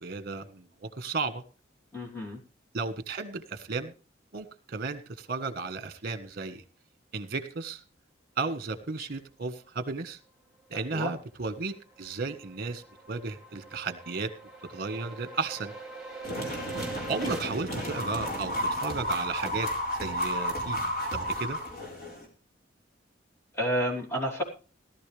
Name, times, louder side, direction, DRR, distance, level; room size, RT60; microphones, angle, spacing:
voice 1, 0.0-1.4 2.7-3.9 4.3-6.6 7.1-7.8 8.4-10.2 10.7-11.7 12.0-14.3 14.7-15.7 17.1-19.7 20.0-20.8 21.1-21.6, right 4 dB, 50° right, 11 dB, 1.4 m, -34 dB
voice 2, 1.9-2.4 10.7-11.1 17.2-17.3 23.6-24.4, equal, 15° left, -2 dB, 3.3 m, -30 dB
sound 1, 11.2-17.4, right 3 dB, ahead, 3.8 m, -43 dB
sound 2, 16.2-22.2, equal, 50° left, 4.4 m, -32 dB
17.5 x 12.0 x 3.4 m, 0.35 s
head